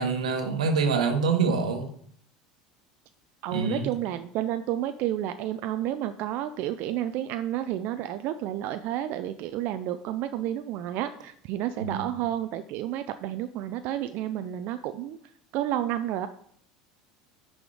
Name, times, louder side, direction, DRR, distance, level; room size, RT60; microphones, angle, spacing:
voice 1, 0.0-1.9 3.5-3.9 11.8-12.1, right 5 dB, 90° right, 6 dB, 1.2 m, -26 dB
voice 2, 3.4-15.2 15.5-16.3, right 12 dB, 60° right, 9 dB, 0.4 m, -31 dB
6.1 x 5.0 x 4.9 m, 0.63 s
hypercardioid pair, 85°, 4 cm